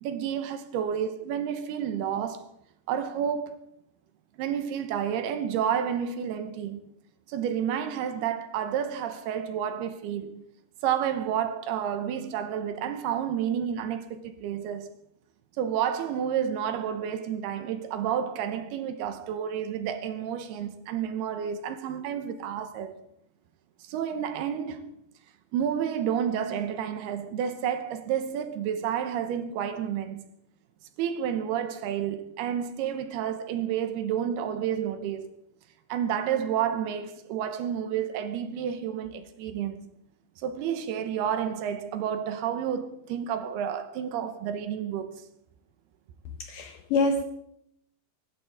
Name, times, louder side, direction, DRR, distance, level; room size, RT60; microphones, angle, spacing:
voice 1, 0.0-2.5 2.9-3.6 4.4-6.8 7.3-10.4 10.8-14.9 15.6-23.0 23.9-24.9 25.5-30.3 31.0-35.3 35.9-39.9 40.4-45.2, right 9 dB, 80° right, 3.0 m, -30 dB
voice 2, 46.4-47.2, left 3 dB, 75° left, 2.0 m, -26 dB
24.0 x 11.5 x 3.7 m
omnidirectional pair, 4.7 m